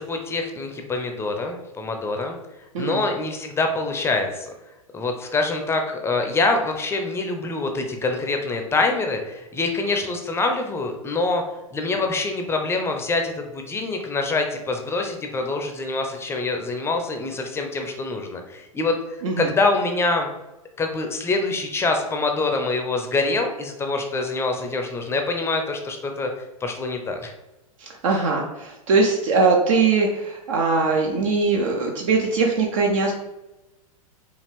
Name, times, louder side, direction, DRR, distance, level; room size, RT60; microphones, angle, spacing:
voice 1, 0.0-2.4 2.8-4.5 4.9-11.4 11.7-18.9 19.4-20.3 20.8-26.3 26.6-27.3, left 3 dB, 15° left, 4 dB, 0.5 m, -25 dB
voice 2, 27.8-33.1, right 4 dB, 60° right, 0 dB, 0.7 m, -21 dB
5.1 x 2.5 x 3.3 m, 0.98 s
hypercardioid pair, 105°, 19 cm